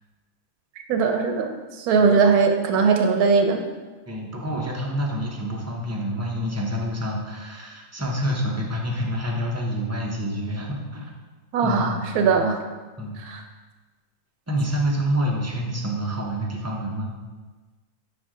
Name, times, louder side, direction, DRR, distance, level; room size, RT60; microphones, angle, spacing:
voice 1, 0.9-3.6 11.5-12.6 13.2-13.4, right 5 dB, 90° right, 4 dB, 1.2 m, -20 dB
voice 2, 4.1-11.1 11.6-12.4 13.0-13.2 14.5-17.1, equal, 20° right, -2 dB, 0.4 m, -27 dB
6.2 x 4.5 x 3.7 m, 1.3 s
omnidirectional pair, 1.6 m